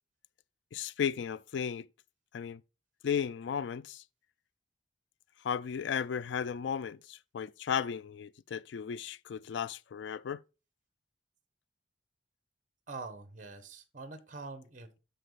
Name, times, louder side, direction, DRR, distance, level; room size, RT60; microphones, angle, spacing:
voice 1, 0.7-1.9 2.3-2.6 3.0-4.0 5.4-10.4, left 7 dB, 75° left, 0.4 m, -35 dB
voice 2, 12.9-15.0, right 3 dB, 45° right, 1.5 m, -45 dB
12.5 x 5.3 x 4.1 m
head